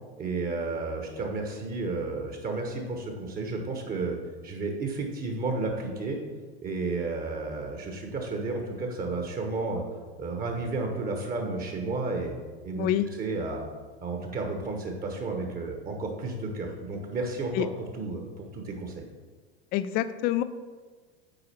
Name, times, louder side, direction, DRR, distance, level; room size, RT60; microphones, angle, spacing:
voice 1, 0.2-4.2 4.4-6.2 6.6-9.8 10.2-12.4 12.6-12.9 13.2-13.7 14.0-17.7 17.9-19.1, right 3 dB, 30° right, 3 dB, 1.2 m, -32 dB
voice 2, 19.7-20.4, left 12 dB, 30° left, 13 dB, 0.4 m, -26 dB
8.0 x 4.7 x 4.3 m, 1.4 s
figure-of-eight pair, 80°, 31 cm